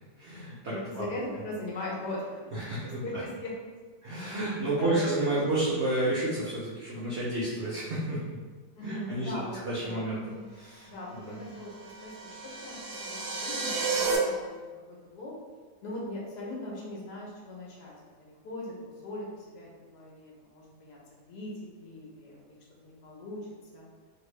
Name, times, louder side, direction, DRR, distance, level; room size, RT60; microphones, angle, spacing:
voice 1, 0.2-1.1 2.5-3.2 4.0-8.2 8.8-11.4, right 1 dB, 90° right, -8 dB, 0.6 m, -31 dB
voice 2, 0.7-2.4 2.8-3.5 4.8-5.0 8.8-10.1 10.9-14.5 14.9-15.3 15.8-17.9 18.2-19.3 19.5-21.0 21.3-21.5 21.8-22.6 22.8-23.4 23.7-23.8, left 1 dB, 70° left, -4 dB, 1.2 m, -40 dB
sound 1, 11.6-14.2, right 4 dB, 70° right, 1.0 m, -32 dB
3.0 x 2.6 x 3.1 m, 1.4 s
omnidirectional pair, 2.0 m